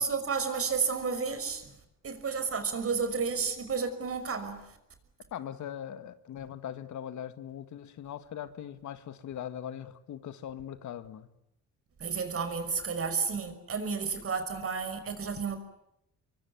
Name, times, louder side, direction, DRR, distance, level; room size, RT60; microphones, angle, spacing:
voice 1, 0.0-1.7 2.0-4.6 12.0-15.6, right 5 dB, 50° right, 5.8 m, -31 dB
voice 2, 5.3-11.3, left 10 dB, 70° left, 2.0 m, -40 dB
26.0 x 23.5 x 9.7 m
cardioid pair, 90°, 30 cm